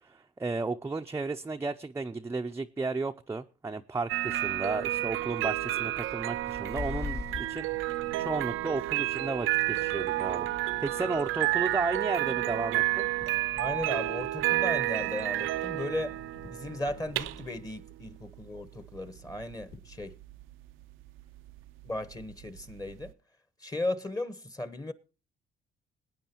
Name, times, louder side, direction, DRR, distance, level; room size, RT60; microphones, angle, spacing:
voice 1, 0.0-7.7 8.0-10.5 10.8-13.1, right 3 dB, 15° right, 0.5 m, -33 dB
sound 1, 4.1-23.1, right 16 dB, 85° right, 0.5 m, -31 dB
sound 2, 4.7-17.6, left 5 dB, 70° left, 1.8 m, -54 dB
sound 3, 5.4-5.5 5.8-6.0 6.5-7.6 8.1-8.5 9.0-9.1 9.5-10.4 12.3-12.4 13.2-13.9 15.5-15.6 16.0-16.1 16.2-17.4 19.1-19.2 19.7-20.1, left 4 dB, 55° left, 2.4 m, -42 dB
voice 2, 13.6-16.2 16.5-20.2 21.8-23.1 23.6-24.9, left 1 dB, 20° left, 1.0 m, -36 dB
21.0 x 9.1 x 2.9 m
cardioid pair, 90°, 20 cm